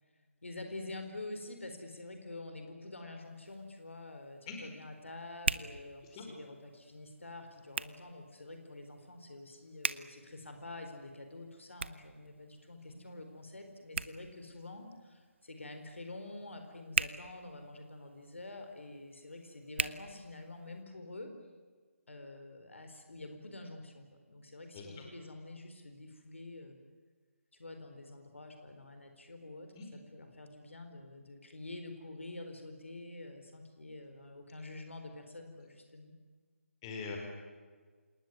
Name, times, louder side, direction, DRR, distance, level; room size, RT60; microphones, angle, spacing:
voice 1, 0.4-21.3 22.1-26.8 27.5-36.1, left 2 dB, 60° left, 6 dB, 4.4 m, -47 dB
Hands, 3.2-20.8, right 4 dB, 50° right, 1.0 m, -43 dB
voice 2, 24.7-25.0 29.8-29.9 36.8-37.2, left 5 dB, 20° left, 2 dB, 4.8 m, -42 dB
27.5 x 20.0 x 9.4 m, 1.5 s
figure-of-eight pair, 150°, 8 cm